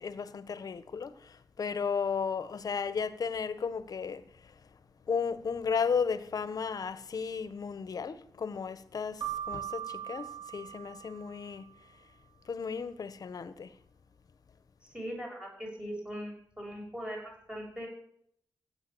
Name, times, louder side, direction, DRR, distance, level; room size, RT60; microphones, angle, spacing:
voice 1, 0.0-4.2 5.1-11.7 12.5-13.7, left 6 dB, 55° left, 1.2 m, -34 dB
Keyboard (musical), 9.2-11.7, right 11 dB, 70° right, 3.8 m, -40 dB
voice 2, 14.8-17.9, equal, 10° right, 6.6 m, -40 dB
16.0 x 9.0 x 8.7 m
wide cardioid pair, 130°, 8 cm